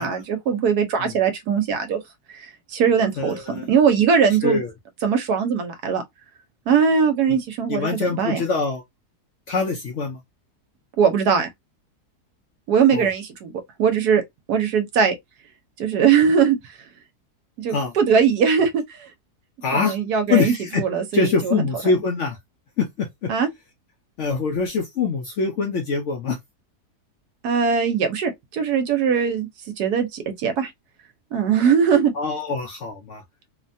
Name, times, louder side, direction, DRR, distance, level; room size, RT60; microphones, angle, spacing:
voice 1, 0.0-2.0 2.3-2.5 2.7-4.6 5.0-6.0 6.7-8.4 11.0-11.5 12.7-13.5 13.8-14.2 14.5-15.1 15.8-16.6 17.6-18.8 19.7-21.6 23.3-23.5 27.4-29.5 29.8-30.7 31.3-32.1, right 6 dB, 75° right, 1.2 m, -20 dB
voice 2, 3.2-3.7 4.4-4.7 7.7-8.8 9.5-10.2 12.9-13.1 17.7-17.9 19.6-20.0 20.3-20.8 21.1-22.4 22.8-23.3 24.2-26.4 32.1-33.2, left 4 dB, 65° left, 0.7 m, -24 dB
3.0 x 2.2 x 2.6 m
omnidirectional pair, 1.7 m